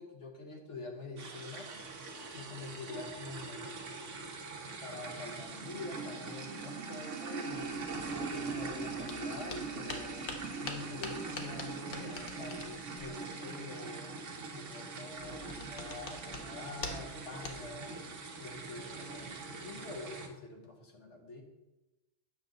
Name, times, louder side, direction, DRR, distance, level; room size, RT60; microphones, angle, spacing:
voice 1, 0.0-1.7 2.3-3.9 4.8-7.9 8.3-10.2 10.6-14.1 14.5-17.9 18.4-21.4, left 3 dB, 70° left, 1 dB, 1.5 m, -46 dB
sound 1, 1.2-20.3, right 4 dB, 80° right, 1.3 m, -42 dB
sound 2, 9.1-9.2 9.5-13.2 15.2-16.5 16.8-17.2 17.4-17.6, left 3 dB, 50° left, 1.1 m, -43 dB
8.8 x 6.0 x 3.9 m, 1.0 s
omnidirectional pair, 1.2 m